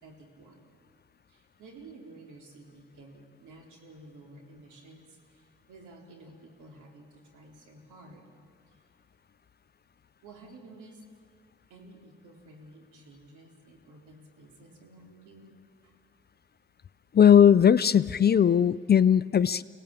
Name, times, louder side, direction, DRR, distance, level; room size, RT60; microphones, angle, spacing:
voice 1, 0.0-0.8 1.3-8.4 8.7-8.8 10.2-11.0 11.7-15.5 15.8-16.0, right 2 dB, 75° right, 1 dB, 4.2 m, -52 dB
voice 2, 17.1-19.6, left 8 dB, 35° left, 16 dB, 0.5 m, -19 dB
25.0 x 17.5 x 9.0 m, 2.5 s
cardioid pair, 90°, 30 cm